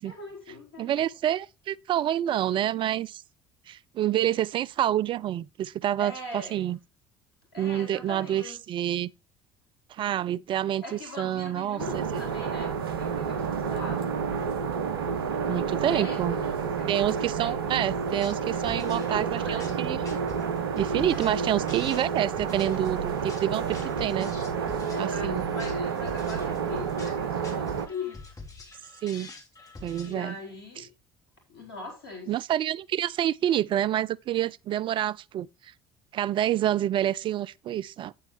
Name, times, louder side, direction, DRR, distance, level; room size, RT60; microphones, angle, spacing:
voice 1, 0.0-1.0 6.0-6.8 7.5-8.6 10.8-14.1 15.4-17.1 17.4-17.9 18.5-19.7 21.1-21.4 24.8-28.4 30.0-30.9 31.5-32.3, left 2 dB, 80° left, 4.3 m, -41 dB
voice 2, 0.8-3.2 3.7-6.8 7.6-9.1 9.9-12.0 15.5-16.3 16.9-20.0 20.8-24.3 25.0-25.4 29.0-29.3 29.8-30.4 32.3-35.7 36.1-38.1, right 11 dB, 45° right, 0.4 m, -28 dB
sound 1, 11.8-27.9, right 6 dB, 80° right, 0.8 m, -30 dB
sound 2, 18.1-30.1, left 3 dB, 30° left, 3.3 m, -46 dB
9.3 x 9.1 x 3.2 m
figure-of-eight pair, 55°, 12 cm